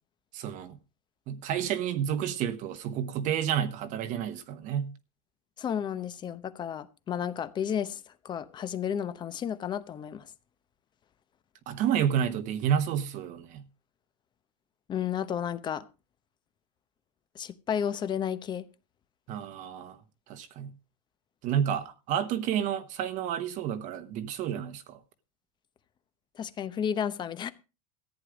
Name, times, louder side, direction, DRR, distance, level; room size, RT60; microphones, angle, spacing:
voice 1, 0.3-0.8 1.3-5.0 11.7-13.7 19.3-20.0 20.3-20.7 21.4-25.0, right 9 dB, 40° right, 1.1 m, -30 dB
voice 2, 5.6-10.3 14.9-15.8 17.3-18.6 26.3-27.5, left 8 dB, 20° left, 0.8 m, -32 dB
14.5 x 9.3 x 5.0 m
supercardioid pair, 150°, 21 cm